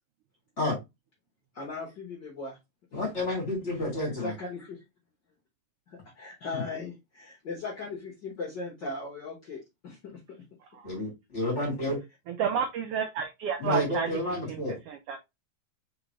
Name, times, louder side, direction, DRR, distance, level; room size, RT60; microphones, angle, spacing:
voice 1, 1.5-2.6 2.9-3.0 4.0-4.8 5.9-10.2, left 3 dB, 55° left, -2 dB, 1.3 m, -38 dB
voice 2, 2.9-4.3 6.5-6.6 10.8-12.0 13.6-14.8, left 1 dB, 25° left, -2 dB, 2.4 m, -30 dB
voice 3, 12.4-14.1 14.5-14.6 14.9-15.2, right 7 dB, 80° right, 5 dB, 1.3 m, -30 dB
4.5 x 3.8 x 3.0 m, 0.21 s
omnidirectional pair, 3.3 m